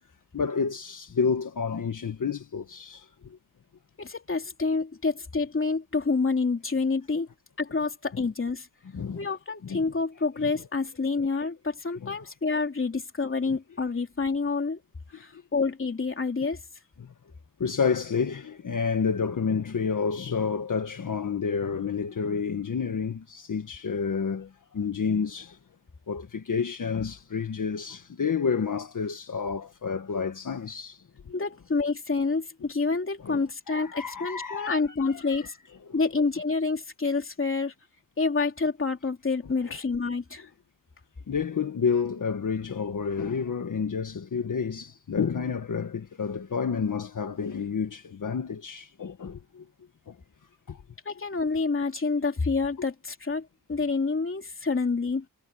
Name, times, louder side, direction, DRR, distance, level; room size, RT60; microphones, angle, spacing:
voice 1, 0.3-3.4 8.1-8.2 8.9-9.2 9.6-9.9 10.4-10.5 11.2-11.3 12.0-12.1 13.5-13.6 15.1-15.4 17.0-17.1 17.6-25.6 26.1-31.3 33.2-35.5 35.9-36.0 39.6-39.8 41.3-49.6 50.1-50.2 50.7-50.8, left 6 dB, 55° left, 1.6 m, -30 dB
voice 2, 4.0-7.3 7.6-8.7 9.1-14.8 15.1-16.6 31.3-35.6 35.9-37.7 38.2-40.5 51.0-55.2, left 4 dB, 35° left, 3.0 m, -28 dB
wide cardioid pair, 135°, 37 cm